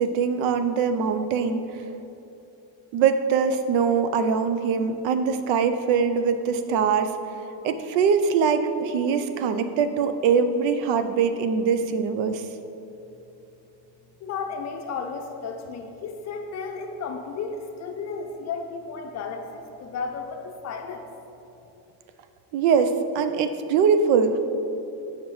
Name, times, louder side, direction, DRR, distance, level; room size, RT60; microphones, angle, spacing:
voice 1, 0.0-1.6 2.9-7.2 7.6-12.4 22.5-24.4, right 6 dB, 80° right, 9 dB, 0.6 m, -22 dB
voice 2, 14.2-21.0, left 5 dB, 40° left, 4 dB, 0.5 m, -33 dB
7.5 x 5.7 x 3.1 m, 2.9 s
cardioid pair, 145°, 44 cm